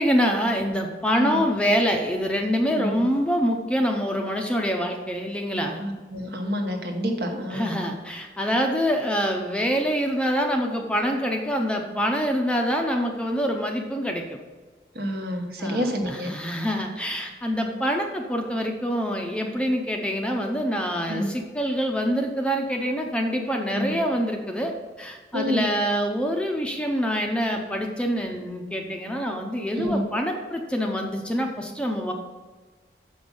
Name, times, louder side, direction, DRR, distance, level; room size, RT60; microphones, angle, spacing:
voice 1, 0.0-5.8 7.5-14.4 15.6-32.1, equal, 5° left, 2 dB, 0.6 m, -25 dB
voice 2, 2.7-3.0 5.8-7.7 14.9-16.3 21.1-21.3 23.7-24.0 25.3-25.7 29.7-30.0, equal, 60° right, 3 dB, 1.1 m, -28 dB
7.2 x 5.2 x 5.4 m, 1.4 s
head